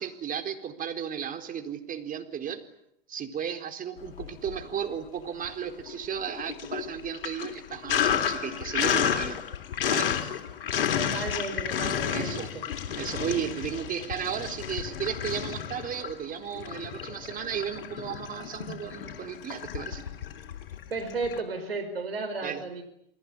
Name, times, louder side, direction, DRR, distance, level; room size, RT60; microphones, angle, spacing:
voice 1, 0.0-2.6 3.1-9.4 9.9-10.2 12.1-12.5 13.0-20.0 22.4-22.6, right 8 dB, 30° right, 6 dB, 4.1 m, -34 dB
Sink (filling or washing), 4.1-5.0 5.3-21.4, left 9 dB, 70° left, 3.6 m, -31 dB
voice 2, 10.9-12.6 20.9-22.8, right 3 dB, 85° right, 6 dB, 5.0 m, -34 dB
29.0 x 21.0 x 9.8 m, 0.75 s
figure-of-eight pair, 90°, 29 cm